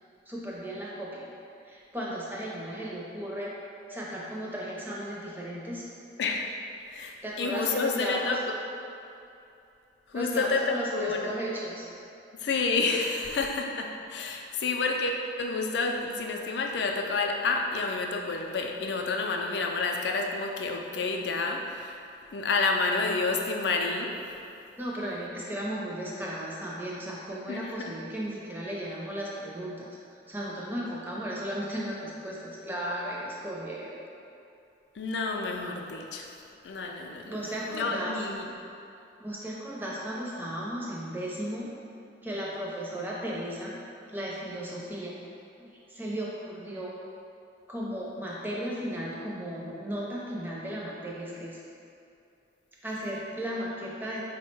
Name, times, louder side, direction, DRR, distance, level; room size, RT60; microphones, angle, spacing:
voice 1, 0.3-1.3 1.6-3.5 3.9-5.9 7.2-8.4 10.1-11.9 24.8-34.0 37.3-38.2 39.2-41.7 42.2-43.8 44.1-45.2 45.6-46.9 47.7-51.6 52.8-54.3, equal, 10° right, -5 dB, 0.5 m, -35 dB
voice 2, 6.2-6.5 6.9-8.5 10.1-11.4 12.4-22.0 22.3-24.2 27.5-27.9 35.0-36.3 36.6-37.4 37.7-38.5, left 3 dB, 65° left, 2 dB, 0.4 m, -29 dB
4.6 x 2.1 x 4.4 m, 2.7 s
head